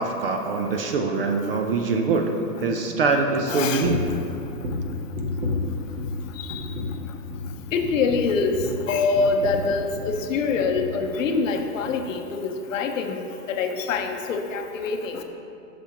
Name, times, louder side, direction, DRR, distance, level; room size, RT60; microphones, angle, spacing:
voice 1, 0.0-4.0, right 3 dB, 40° right, 4 dB, 0.4 m, -24 dB
voice 2, 3.5-3.9 6.4-6.7 7.7-15.2, left 4 dB, 55° left, 5 dB, 0.7 m, -25 dB
sound 1, 3.8-4.2 4.6-6.2 6.5-7.0 7.3-7.5 7.8-10.2 10.5-11.0 11.3-11.5 11.8-11.9, left 3 dB, 25° right, 1.1 m, -31 dB
8.1 x 6.0 x 2.9 m, 2.8 s
hypercardioid pair, 135°, 47 cm